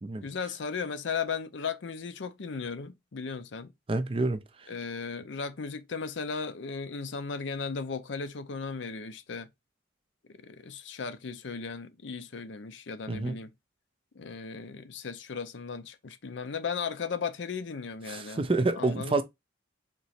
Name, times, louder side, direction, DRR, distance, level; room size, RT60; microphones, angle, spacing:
voice 1, 0.2-3.7 4.7-9.5 10.4-13.5 14.2-18.4 18.8-19.2, left 5 dB, 85° left, 0.6 m, -36 dB
voice 2, 3.9-4.7 13.1-13.4 18.1-19.2, right 2 dB, 30° right, 0.4 m, -28 dB
3.6 x 3.0 x 4.2 m
head